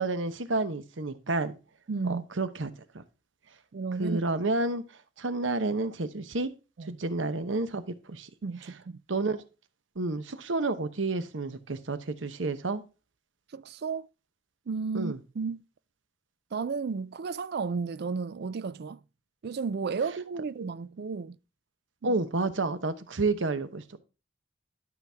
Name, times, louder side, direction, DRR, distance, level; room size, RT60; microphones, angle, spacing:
voice 1, 0.0-1.6 2.0-3.0 4.0-4.8 5.2-6.5 7.0-8.3 9.1-9.4 10.0-12.8 14.9-15.2 22.0-24.0, right 3 dB, 80° right, 1.0 m, -30 dB
voice 2, 1.9-2.2 3.7-4.2 6.8-7.0 8.4-9.0 13.5-14.1 14.7-15.6 16.5-19.0 19.4-21.4 22.0-22.2, right 5 dB, 60° right, 0.4 m, -33 dB
12.0 x 6.0 x 3.5 m
head